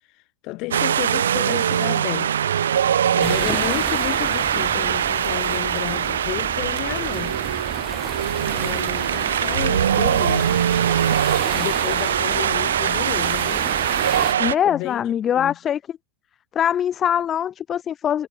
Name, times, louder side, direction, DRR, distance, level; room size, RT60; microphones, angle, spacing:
voice 1, 0.4-2.3 3.1-7.4 8.5-10.7 11.5-13.7 14.7-15.0 15.3-15.6, left 23 dB, 40° left, 2.2 m, -31 dB
Wind, 0.7-14.6, right 9 dB, 65° right, 1.8 m, -22 dB
sound 1, 3.2-14.3, right 6 dB, 20° right, 0.9 m, -32 dB
voice 2, 14.4-15.8 16.5-18.3, left 9 dB, 25° left, 0.5 m, -22 dB
figure-of-eight pair, 90°, 0 cm